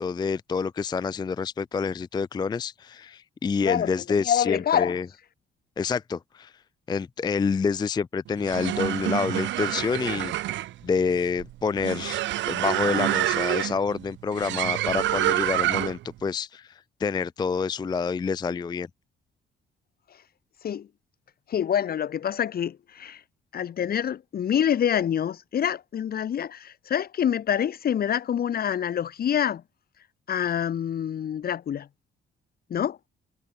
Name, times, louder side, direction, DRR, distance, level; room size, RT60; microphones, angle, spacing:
voice 1, 0.0-5.1 5.8-6.5 6.9-10.5 10.8-18.9, left 5 dB, 20° left, 0.4 m, -28 dB
voice 2, 3.6-5.0 20.6-20.9 21.5-23.2 23.5-29.6 30.3-31.9 32.7-33.0, left 9 dB, 50° left, 0.8 m, -26 dB
sound 1, 8.3-16.1, right 15 dB, 70° right, 0.4 m, -27 dB
cardioid pair, 90°, 20 cm